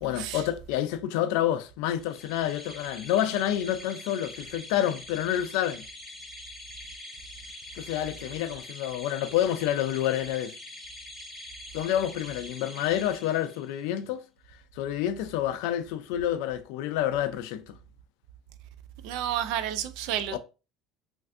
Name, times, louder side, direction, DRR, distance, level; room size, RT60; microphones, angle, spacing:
voice 1, 0.0-5.9 7.8-10.5 11.7-14.2 14.8-17.8 20.3-20.4, left 11 dB, 80° left, 0.3 m, -28 dB
sound 1, 2.0-13.8, left 1 dB, 10° left, 0.7 m, -44 dB
voice 2, 19.0-20.4, right 10 dB, 75° right, 0.4 m, -30 dB
3.2 x 2.5 x 2.5 m
cardioid pair, 125°, 0 cm